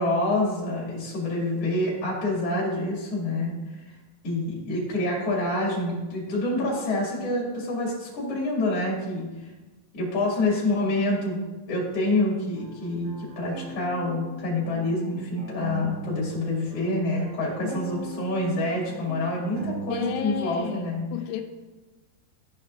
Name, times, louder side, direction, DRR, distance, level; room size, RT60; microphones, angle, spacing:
voice 1, 0.0-3.9 4.2-9.5 9.9-11.4 11.7-21.0, left 2 dB, 40° left, -5 dB, 3.0 m, -27 dB
sound 1, 12.6-16.5 16.7-20.5, right 3 dB, 70° right, 2.6 m, -39 dB
voice 2, 19.9-21.4, left 10 dB, 90° left, 5 dB, 2.8 m, -32 dB
14.5 x 5.2 x 2.5 m, 1.2 s
omnidirectional pair, 5.0 m